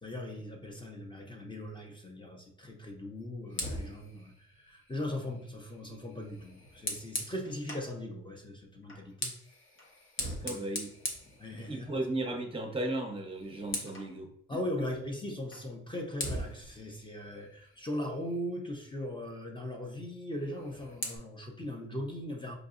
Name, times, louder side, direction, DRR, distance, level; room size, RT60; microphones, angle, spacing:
voice 1, 0.0-9.3 10.2-10.6 11.4-12.0 14.5-22.5, left 1 dB, 15° left, 1 dB, 0.7 m, -39 dB
Fire, 3.5-7.9 8.8-12.1 12.4-12.7 13.0-14.1 15.5-15.7 16.2-18.5 20.4-21.2, left 1 dB, 40° left, 0.9 m, -41 dB
voice 2, 10.4-10.9 11.5-14.6, right 1 dB, 20° right, 4 dB, 0.8 m, -36 dB
4.9 x 2.6 x 2.5 m, 0.69 s
cardioid pair, 90°, 30 cm